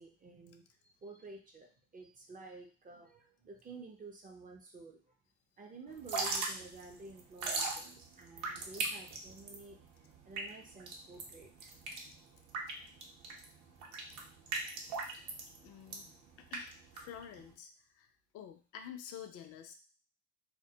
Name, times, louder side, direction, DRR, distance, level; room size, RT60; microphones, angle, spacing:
voice 1, 0.0-5.2 5.6-9.8 10.3-11.7, right 3 dB, 25° right, 1 dB, 0.5 m, -52 dB
Drip / Trickle dribble, 5.9-17.5, right 3 dB, 55° right, 0.7 m, -40 dB
voice 2, 15.6-17.7 18.0-18.1 18.3-19.7, left 9 dB, 45° left, 6 dB, 0.4 m, -49 dB
2.2 x 2.1 x 2.7 m, 0.37 s
supercardioid pair, 85°, 36 cm